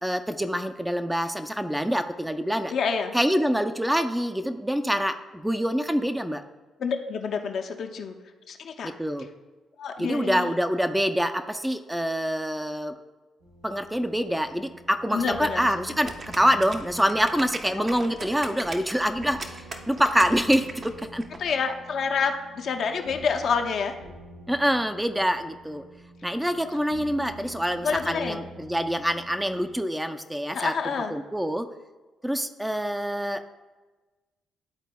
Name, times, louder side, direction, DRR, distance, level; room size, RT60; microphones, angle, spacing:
voice 1, 0.0-2.7 3.1-6.4 8.8-9.3 10.0-13.0 13.6-21.3 24.5-25.8 26.2-31.7 32.2-33.4, equal, 5° right, 7 dB, 0.5 m, -26 dB
voice 2, 2.7-3.1 6.8-8.1 8.5-8.9 9.8-10.5 15.1-15.6 17.7-17.8 21.4-24.0 27.8-28.4 30.5-31.1, left 5 dB, 65° left, 4 dB, 0.6 m, -28 dB
sound 1, 13.4-29.8, right 1 dB, 90° right, 1.5 m, -47 dB
sound 2, 16.0-21.4, right 3 dB, 45° right, 0.8 m, -39 dB
11.0 x 4.0 x 2.3 m, 1.3 s
hypercardioid pair, 50°, 0 cm